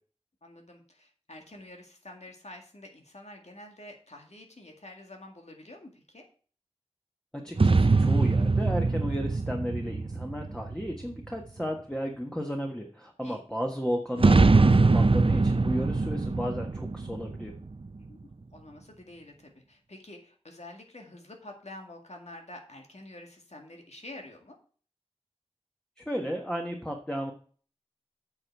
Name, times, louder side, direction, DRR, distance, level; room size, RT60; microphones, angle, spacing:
voice 1, 0.4-6.2 13.2-13.4 18.1-18.2 18.5-24.6, left 1 dB, 80° left, 2 dB, 2.0 m, -48 dB
voice 2, 7.4-17.5 26.0-27.3, equal, 5° left, 1 dB, 1.4 m, -34 dB
sound 1, 7.6-11.3 14.2-18.0, right 3 dB, 55° right, 0.5 m, -23 dB
8.8 x 5.8 x 4.7 m, 0.42 s
wide cardioid pair, 45°, 11 cm